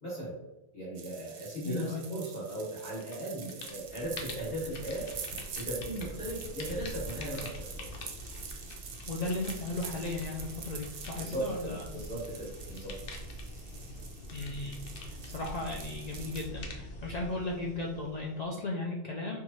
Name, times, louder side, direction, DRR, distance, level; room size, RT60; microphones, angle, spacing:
voice 1, 0.0-0.3 0.7-5.1 5.5-7.9 11.2-12.9, right 1 dB, 40° left, -9 dB, 1.5 m, -37 dB
sound 1, 0.9-16.5, right 6 dB, 60° right, 0.7 m, -46 dB
voice 2, 1.6-2.1 9.1-11.9 14.3-19.4, left 2 dB, 60° left, -2 dB, 0.4 m, -36 dB
sound 2, 2.8-3.2 3.4-18.4, left 1 dB, 90° left, 1.0 m, -44 dB
4.5 x 2.4 x 2.7 m, 1.0 s
omnidirectional pair, 1.2 m